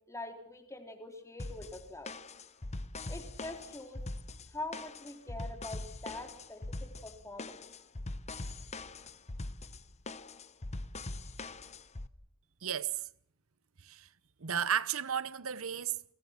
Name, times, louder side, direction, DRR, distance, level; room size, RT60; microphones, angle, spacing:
voice 1, 0.1-2.1 3.1-4.0 4.5-7.6, left 2 dB, 15° left, 3.8 m, -44 dB
sound 1, 1.4-12.1, left 2 dB, 35° left, 1.0 m, -42 dB
voice 2, 12.6-13.1 13.8-14.1 14.4-16.0, right 8 dB, 85° right, 0.9 m, -33 dB
29.0 x 22.5 x 5.9 m
head